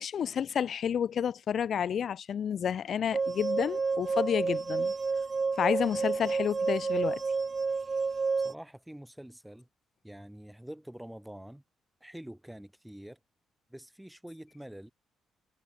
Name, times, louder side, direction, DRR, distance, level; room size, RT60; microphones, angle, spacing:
voice 1, 0.0-4.9 5.6-7.2, left 8 dB, 60° left, 1.8 m, -30 dB
sound 1, 3.1-8.5, right 4 dB, 35° right, 0.9 m, -30 dB
voice 2, 8.4-9.7 10.0-11.6 12.0-13.2 13.7-14.9, right 1 dB, 5° right, 7.2 m, -46 dB
cardioid pair, 90°, 0 cm